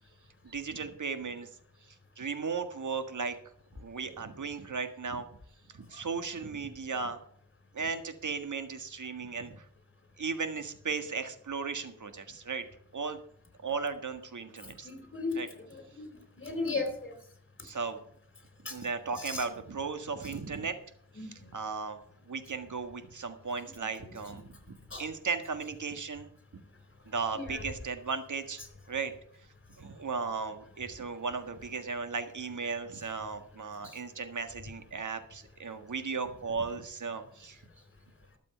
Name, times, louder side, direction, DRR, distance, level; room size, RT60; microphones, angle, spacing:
voice 1, 0.5-1.5 2.2-3.4 3.8-5.3 5.7-7.2 7.7-9.6 10.2-12.7 12.9-13.2 13.6-14.9 15.4-15.5 17.6-18.0 18.7-20.8 21.2-22.0 22.3-24.5 25.0-26.3 27.1-28.6 28.9-29.1 29.8-37.6, right 5 dB, 60° right, 8 dB, 1.7 m, -36 dB
voice 2, 14.8-15.4 15.7-16.1 16.4-17.1 18.7-18.8 19.3-19.4 21.2-21.3 24.9-25.0 27.3-27.4 33.8-34.0, left 3 dB, 35° left, 7 dB, 3.9 m, -35 dB
12.5 x 7.5 x 6.8 m, 0.65 s
cardioid pair, 60°, 34 cm